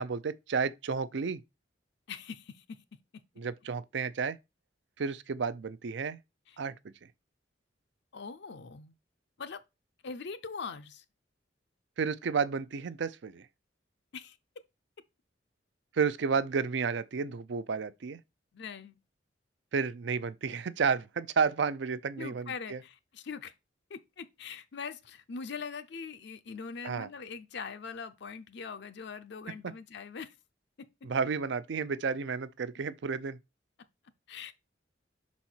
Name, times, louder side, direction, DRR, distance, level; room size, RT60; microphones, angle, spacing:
voice 1, 0.0-1.4 3.4-4.4 5.0-6.2 6.6-6.7 12.0-13.5 15.9-18.2 19.7-22.8 26.8-27.1 31.0-33.4, right 5 dB, 65° right, 0.5 m, -31 dB
voice 2, 2.1-3.2 6.5-6.6 8.1-8.9 9.4-9.6 10.0-11.0 14.1-14.4 18.5-19.0 22.2-23.5 23.9-30.4 30.8-31.1 34.3-34.5, left 5 dB, 60° left, 0.5 m, -42 dB
5.6 x 4.2 x 4.4 m
head